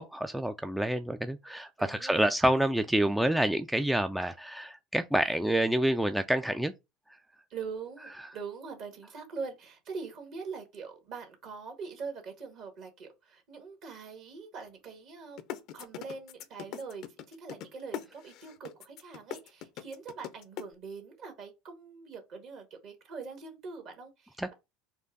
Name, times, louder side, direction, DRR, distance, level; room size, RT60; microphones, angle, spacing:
voice 1, 0.0-6.7 8.2-8.3 24.4-24.5, right 1 dB, 5° right, 0.3 m, -28 dB
voice 2, 1.8-2.3 7.5-15.4 15.7-24.5, right 5 dB, 50° right, 1.6 m, -43 dB
sound 1, 15.4-20.6, left 10 dB, 50° left, 0.5 m, -40 dB
4.5 x 2.5 x 3.6 m
figure-of-eight pair, 70°, 0 cm